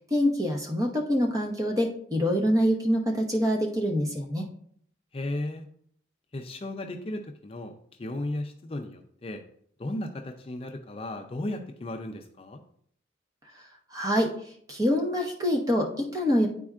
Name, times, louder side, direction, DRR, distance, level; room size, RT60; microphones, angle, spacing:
voice 1, 0.0-4.5 13.9-14.3 14.7-16.5, equal, 20° right, 2 dB, 0.8 m, -25 dB
voice 2, 5.1-5.7 6.3-7.7 8.0-9.4 9.8-12.6, left 1 dB, 30° left, 4 dB, 0.4 m, -35 dB
9.9 x 4.3 x 2.4 m, 0.64 s
head